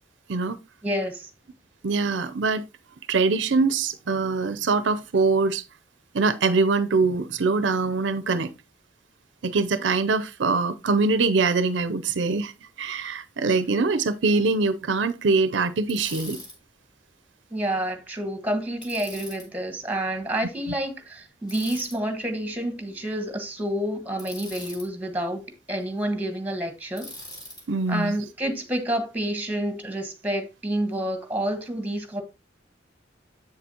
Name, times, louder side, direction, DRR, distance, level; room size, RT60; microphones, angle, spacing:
voice 1, 0.8-1.3 17.5-25.4 25.7-27.1 27.9-32.2, right 1 dB, 10° right, 1.4 m, -29 dB
voice 2, 1.8-2.6 3.1-5.6 6.1-8.5 9.4-12.5 12.8-16.4 27.7-28.2, right 4 dB, 70° right, 0.6 m, -23 dB
Bicycle, 15.9-16.6 18.8-19.5 21.5-22.0 24.2-24.9 27.0-27.6, left 1 dB, 25° left, 2.8 m, -41 dB
7.9 x 6.9 x 2.8 m
head